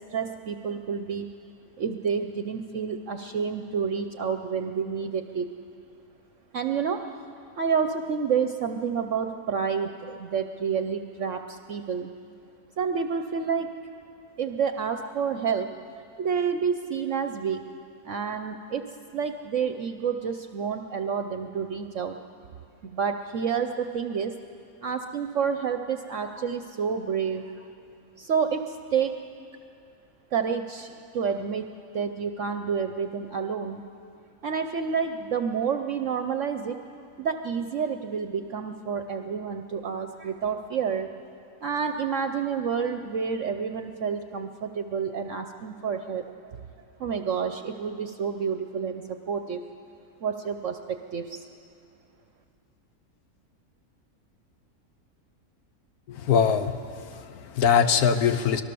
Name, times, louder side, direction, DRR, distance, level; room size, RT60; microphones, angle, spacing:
voice 1, 0.1-1.3 1.8-5.5 6.5-7.0 7.6-12.1 12.8-13.7 14.4-15.7 16.2-17.7 18.0-18.8 19.1-22.2 22.8-24.3 24.8-27.7 28.2-29.1 30.3-33.8 34.4-36.8 37.2-41.1 41.6-46.6 47.0-49.6 50.2-50.8 51.1-51.4, right 6 dB, 60° right, 7 dB, 1.0 m, -29 dB
voice 2, 56.1-58.6, left 7 dB, 75° left, 10 dB, 1.4 m, -23 dB
25.0 x 19.0 x 6.9 m, 2.5 s
omnidirectional pair, 1.6 m